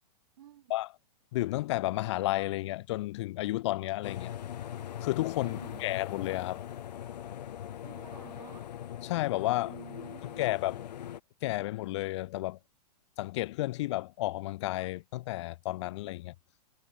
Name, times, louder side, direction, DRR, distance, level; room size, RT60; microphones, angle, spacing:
voice 1, 0.4-0.7 5.4-6.0 7.8-8.7 9.6-10.5, right 12 dB, 65° right, 2.3 m, -51 dB
voice 2, 1.3-4.3 5.0-6.6 9.0-9.7 10.4-10.8 11.4-12.6 13.2-16.3, left 17 dB, 45° left, 0.6 m, -32 dB
sound 1, 4.0-11.2, left 10 dB, 80° left, 1.0 m, -41 dB
hypercardioid pair, 150°, 21 cm